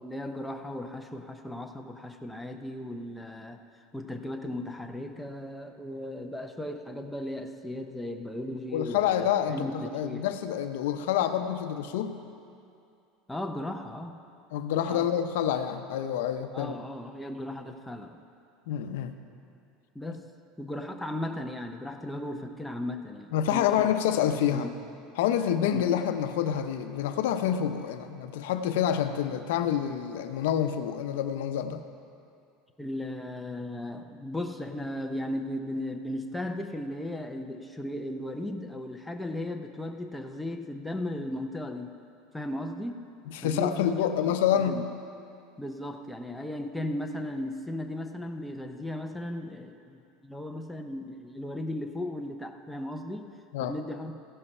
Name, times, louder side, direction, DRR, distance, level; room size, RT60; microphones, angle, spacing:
voice 1, 0.0-3.6 3.9-10.3 13.3-14.2 14.9-15.1 16.5-18.2 19.9-20.3 20.6-23.9 24.5-24.7 25.7-25.8 32.8-42.0 42.3-43.1 43.4-44.8 45.6-53.3 53.6-54.1, left 1 dB, 5° left, 4 dB, 0.5 m, -36 dB
voice 2, 8.7-12.1 14.5-16.7 18.7-19.1 23.3-24.7 25.2-31.8 43.3-44.8 53.5-53.7, left 9 dB, 85° left, 8 dB, 0.6 m, -27 dB
15.5 x 5.5 x 5.4 m, 2.5 s
supercardioid pair, 155°, 0 cm